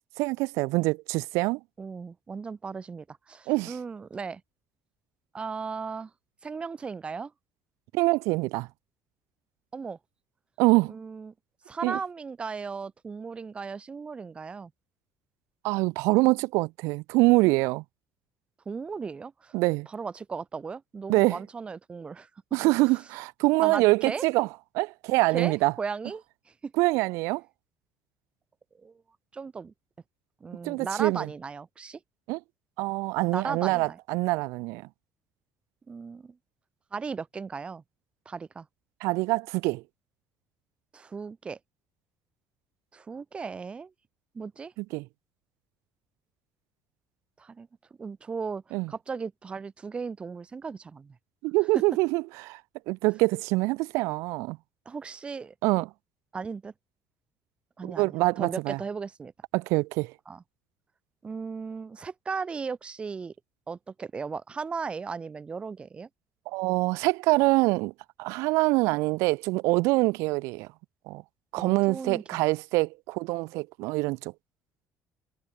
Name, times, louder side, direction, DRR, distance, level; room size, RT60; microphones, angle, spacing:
voice 1, 0.2-1.6 3.5-3.7 7.9-8.7 10.6-11.0 11.8-12.0 15.6-17.8 19.5-19.9 21.1-21.4 22.5-24.5 24.7-25.7 26.8-27.4 30.6-31.3 32.3-32.4 32.8-34.9 39.0-39.8 44.8-45.0 48.7-48.9 51.4-52.6 52.9-54.6 55.6-55.9 57.8-58.8 59.5-60.1 66.5-67.9 68.2-70.7 71.1-71.2 71.5-74.3, right 23 dB, 90° right, 0.5 m, -25 dB
voice 2, 1.8-4.4 5.3-6.1 6.4-7.3 9.7-10.0 10.9-11.3 11.7-14.7 18.7-19.5 19.9-22.3 23.6-24.2 25.3-26.2 26.6-26.7 28.8-28.9 29.3-29.7 30.4-32.0 33.3-34.0 35.9-36.4 36.9-37.8 38.3-38.7 40.9-41.6 42.9-43.9 44.3-44.7 47.4-47.7 48.0-51.2 51.7-51.8 54.9-55.5 56.3-56.7 57.8-59.3 60.3-60.4 61.2-63.3 63.7-66.1 71.6-72.4, right 5 dB, 20° right, 0.8 m, -36 dB
cardioid pair, 140°, 5 cm